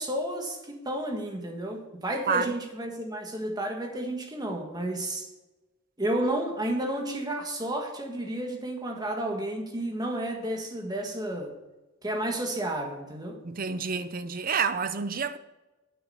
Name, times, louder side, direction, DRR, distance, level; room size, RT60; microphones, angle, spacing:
voice 1, 0.0-5.3 6.0-11.5 12.0-13.4, right 1 dB, 20° right, 1.6 m, -31 dB
voice 2, 13.4-15.4, right 5 dB, 45° right, 0.7 m, -28 dB
9.5 x 7.9 x 5.5 m
head